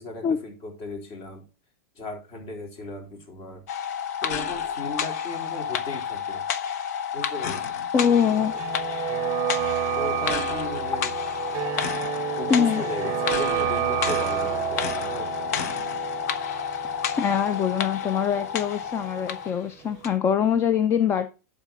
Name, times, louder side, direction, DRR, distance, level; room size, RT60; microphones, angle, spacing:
voice 1, 0.0-1.4 2.0-3.6 4.2-6.4 7.1-7.7 9.9-11.1 12.4-15.7, left 3 dB, 45° left, 3.8 m, -36 dB
sound 1, 3.7-19.6 20.0-20.1, left 8 dB, 65° left, 0.9 m, -30 dB
voice 2, 7.9-8.5 12.5-12.8 16.8-21.3, left 7 dB, 25° left, 0.6 m, -23 dB
sound 2, 7.9-19.7 19.9-20.0, right 14 dB, 40° right, 0.6 m, -31 dB
11.0 x 4.1 x 5.3 m
supercardioid pair, 130°, 9 cm